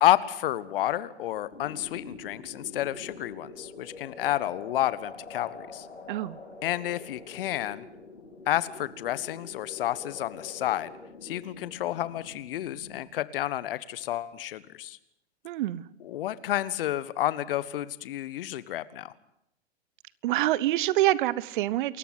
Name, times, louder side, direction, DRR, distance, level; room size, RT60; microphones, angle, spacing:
voice 1, 0.0-5.9 6.6-7.8 8.5-10.9 11.2-15.0 16.0-19.1, left 13 dB, 55° left, 17 dB, 1.5 m, -30 dB
sound 1, 1.5-13.0, left 3 dB, 85° left, 3.8 m, -46 dB
voice 2, 6.1-6.4 15.4-15.8 20.2-22.0, right 15 dB, 50° right, 20 dB, 1.2 m, -26 dB
28.5 x 14.5 x 9.6 m, 0.79 s
figure-of-eight pair, 110°, 34 cm